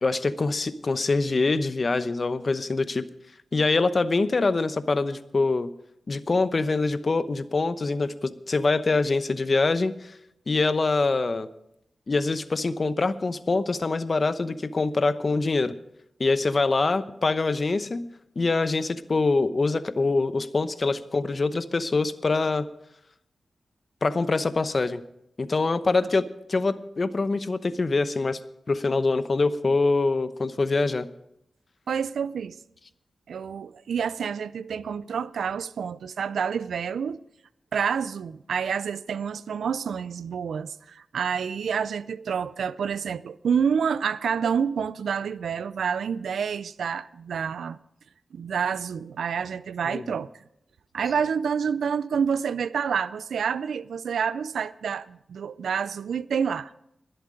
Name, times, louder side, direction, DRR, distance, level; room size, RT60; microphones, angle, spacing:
voice 1, 0.0-3.1 3.5-5.7 6.1-10.1 10.5-11.5 12.1-15.7 16.2-18.1 18.4-22.7 24.0-25.0 25.4-28.4 28.7-31.1 49.8-50.2, left 3 dB, 55° left, 0.9 m, -24 dB
voice 2, 31.9-32.6 33.3-37.2 37.7-47.8 48.3-50.3 50.9-56.7, right 7 dB, 85° right, 0.4 m, -28 dB
21.5 x 7.9 x 5.0 m
cardioid pair, 40°, 0 cm